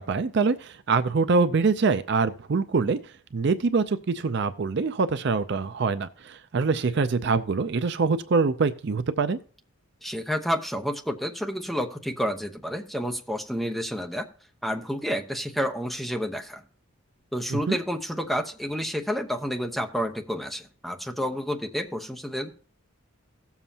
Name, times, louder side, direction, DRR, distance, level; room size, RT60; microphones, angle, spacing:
voice 1, 0.0-3.0 3.3-9.4 17.5-17.8, right 4 dB, 50° right, 12 dB, 0.5 m, -24 dB
voice 2, 10.0-14.3 14.6-16.6 17.3-22.5, equal, ahead, 3 dB, 0.8 m, -30 dB
16.5 x 7.2 x 2.8 m, 0.41 s
head